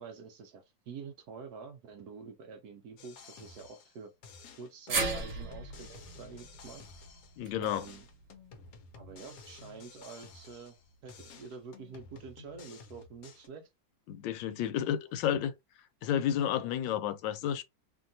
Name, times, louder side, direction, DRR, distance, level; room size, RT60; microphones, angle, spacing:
voice 1, 0.0-4.1 4.6-6.8 7.6-8.0 8.9-10.8 11.0-13.7 14.9-15.0, right 5 dB, 70° right, 1.0 m, -47 dB
sound 1, 3.0-4.0 4.2-7.4 7.7-10.8 11.1-13.5, left 4 dB, 65° left, 1.0 m, -52 dB
sound 2, 4.9-9.2 9.5-9.6 10.8-10.9, right 3 dB, 45° right, 1.1 m, -38 dB
voice 2, 7.4-7.9 14.1-15.5 16.0-17.6, left 10 dB, 80° left, 1.2 m, -31 dB
2.9 x 2.7 x 2.6 m
omnidirectional pair, 2.0 m